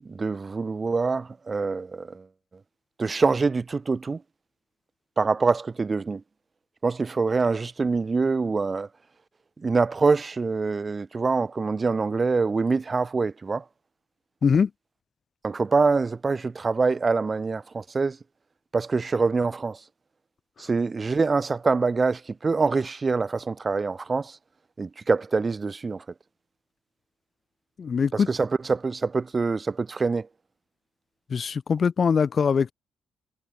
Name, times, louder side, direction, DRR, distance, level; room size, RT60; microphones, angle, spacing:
voice 1, 0.0-2.3 3.0-4.2 5.2-6.2 6.8-8.9 9.6-13.6 15.4-18.2 18.7-19.8 20.6-24.4 24.8-26.0 28.1-30.3, right 4 dB, 30° right, 1.5 m, -25 dB
voice 2, 27.8-28.3 31.3-32.7, left 6 dB, 45° left, 2.9 m, -22 dB
cardioid pair, 90°, 0 cm